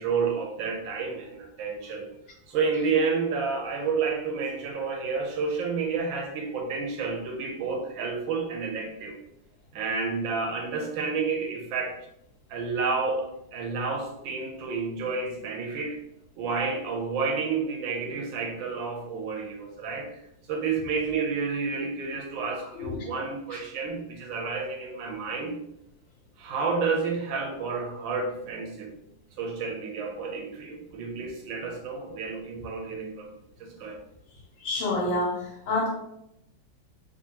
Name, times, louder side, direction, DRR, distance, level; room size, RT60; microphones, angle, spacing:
voice 1, 0.0-2.1 2.5-9.2 9.7-12.0 12.5-16.0 16.4-20.2 20.5-25.5 26.4-28.9 29.4-33.3 33.6-34.0, right 4 dB, 85° right, 2 dB, 1.5 m, -30 dB
voice 2, 34.6-35.4 35.7-35.9, left 2 dB, 85° left, -4 dB, 1.6 m, -26 dB
3.7 x 3.0 x 2.8 m, 0.80 s
omnidirectional pair, 2.1 m